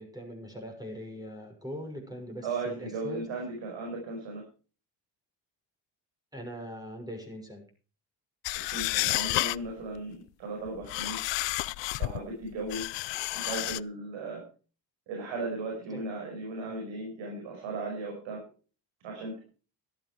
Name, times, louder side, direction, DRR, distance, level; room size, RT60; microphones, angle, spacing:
voice 1, 0.0-3.3 6.3-7.6 15.9-16.0 16.7-16.8, equal, 10° right, 2 dB, 6.3 m, -41 dB
voice 2, 2.4-4.4 8.5-11.2 12.0-12.9 13.4-14.4 15.1-18.4 19.0-19.4, right 3 dB, 85° right, 1 dB, 5.4 m, -36 dB
sound 1, 8.4-9.7 10.7-12.2 12.7-13.8, left 21 dB, 75° left, 0.5 m, -30 dB
14.0 x 12.0 x 4.7 m, 0.37 s
cardioid pair, 95°, 44 cm